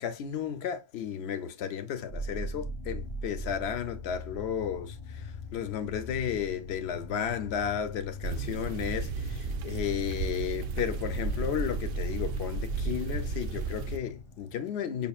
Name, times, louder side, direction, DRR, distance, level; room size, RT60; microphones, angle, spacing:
voice 1, 0.0-15.1, left 8 dB, 65° left, 0.8 m, -33 dB
sound 1, 2.1-14.6, left 1 dB, 30° left, 0.7 m, -42 dB
sound 2, 8.2-14.0, right 4 dB, 65° right, 0.6 m, -33 dB
5.3 x 2.5 x 2.3 m
omnidirectional pair, 1.3 m